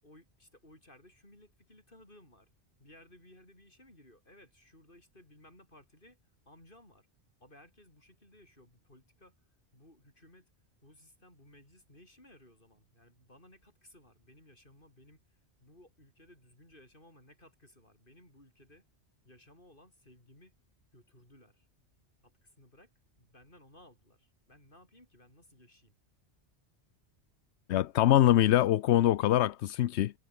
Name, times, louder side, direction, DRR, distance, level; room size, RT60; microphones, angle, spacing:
voice 1, 0.0-2.5 2.8-6.2 6.4-7.1 7.4-9.4 9.7-10.5 10.8-18.8 19.2-20.5 20.9-21.7 22.2-22.9 23.2-25.9, left 1 dB, 50° left, 8.3 m, -59 dB
voice 2, 27.7-30.1, left 12 dB, 85° left, 0.9 m, -24 dB
omnidirectional pair, 1.1 m